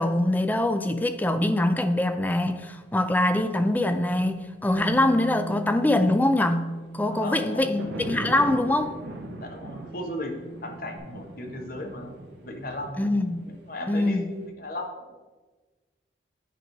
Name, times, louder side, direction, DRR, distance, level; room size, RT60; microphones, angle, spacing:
voice 1, 0.0-9.0 13.0-13.5 13.9-14.3, left 1 dB, 10° left, 9 dB, 0.3 m, -24 dB
Bass guitar, 4.7-11.0, right 2 dB, 10° right, 1.1 m, -39 dB
voice 2, 7.1-7.7 9.4-10.4 10.6-12.1 12.4-13.0 13.5-15.1, left 1 dB, 50° left, 2 dB, 1.0 m, -36 dB
sound 1, 7.4-14.5, right 1 dB, 75° right, 1.0 m, -40 dB
9.2 x 3.1 x 5.1 m, 1.3 s
head